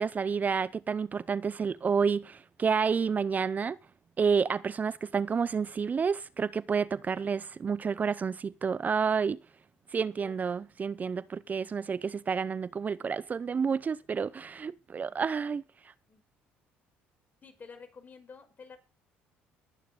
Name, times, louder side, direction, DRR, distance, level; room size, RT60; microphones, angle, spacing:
voice 1, 0.0-3.8 4.2-9.4 9.9-15.6, right 6 dB, 35° right, 0.7 m, -29 dB
voice 2, 10.0-10.8 15.0-15.5 16.0-16.2 17.4-18.8, left 5 dB, 35° left, 5.5 m, -52 dB
21.5 x 9.1 x 4.1 m
supercardioid pair, 75°, 5 cm